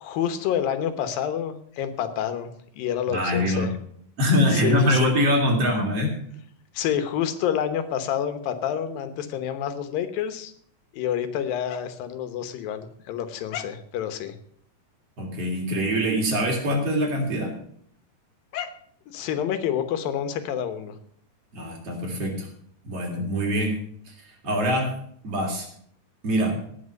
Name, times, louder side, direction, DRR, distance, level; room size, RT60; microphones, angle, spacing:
voice 1, 0.0-3.7 4.5-5.1 5.8-5.9 6.7-10.5 10.9-14.4 18.5-18.7 19.1-20.9, left 9 dB, 90° left, 10 dB, 2.9 m, -28 dB
voice 2, 3.1-3.7 4.2-6.2 15.2-17.6 21.5-22.5 22.8-25.0 25.2-25.7 26.2-26.6, equal, 45° right, 0 dB, 3.7 m, -24 dB
18.0 x 6.1 x 6.5 m, 0.64 s
omnidirectional pair, 3.9 m